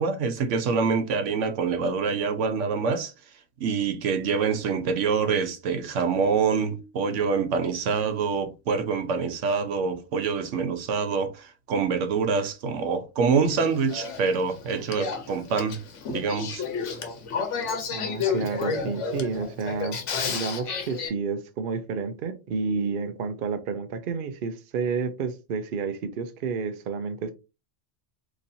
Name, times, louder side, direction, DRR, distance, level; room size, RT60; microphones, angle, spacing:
voice 1, 0.0-3.1 3.6-15.8 16.1-17.0, right 5 dB, 85° right, 1.0 m, -26 dB
Male speech man speaking / Female speech woman speaking / Conversation, 13.4-21.1, left 5 dB, 80° left, 1.1 m, -31 dB
voice 2, 17.9-20.0 20.3-27.3, right 5 dB, 55° right, 0.7 m, -30 dB
4.0 x 3.0 x 2.6 m
omnidirectional pair, 1.2 m